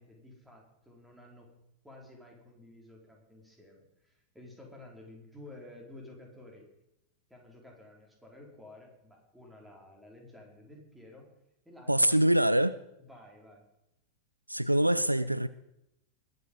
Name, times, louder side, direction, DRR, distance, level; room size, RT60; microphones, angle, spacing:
voice 1, 0.0-1.5 1.8-6.7 7.3-11.3 11.6-12.2 13.0-13.6, left 1 dB, 5° right, 0 dB, 4.2 m, -52 dB
voice 2, 11.9-12.8 14.5-15.5, right 1 dB, 85° right, 16 dB, 0.4 m, -24 dB
21.5 x 8.2 x 5.4 m, 0.84 s
figure-of-eight pair, 90°, 0 cm